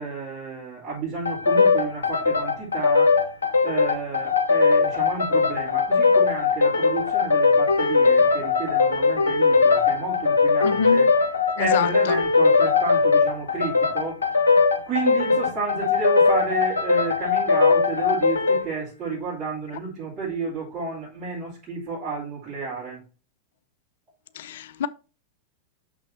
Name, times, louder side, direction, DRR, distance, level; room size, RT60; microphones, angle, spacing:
voice 1, 0.0-3.1 3.6-11.1 11.5-14.5 14.8-23.0, right 4 dB, 35° right, 4.9 m, -31 dB
sound 1, 1.2-18.7, left 4 dB, 75° left, 0.8 m, -20 dB
voice 2, 10.6-11.1 11.6-12.2 24.4-24.9, left 9 dB, 55° left, 0.4 m, -27 dB
6.4 x 6.2 x 4.3 m
figure-of-eight pair, 90°, 0 cm